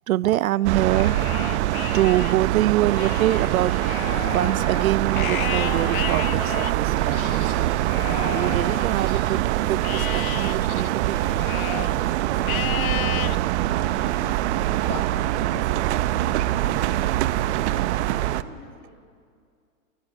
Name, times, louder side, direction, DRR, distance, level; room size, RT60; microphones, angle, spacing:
voice 1, 0.1-1.2 1.4-1.5 1.9-3.8 4.1-7.8 8.2-11.2, right 15 dB, 75° right, 21 dB, 0.6 m, -25 dB
sound 1, 0.6-18.4, right 14 dB, 50° right, 1.0 m, -24 dB
Livestock farm animals working animals, 0.8-2.4 2.8-9.4 9.8-12.0 12.4-13.4 13.9-14.3 14.9-16.0, left 14 dB, 75° left, 0.6 m, -34 dB
Laughter, 10.9-14.1, equal, ahead, 6.5 m, -49 dB
voice 2, 12.2-17.4 18.2-19.1, left 4 dB, 25° left, 2 dB, 4.1 m, -51 dB
28.5 x 19.0 x 8.9 m, 2.2 s
hypercardioid pair, 130°, 42 cm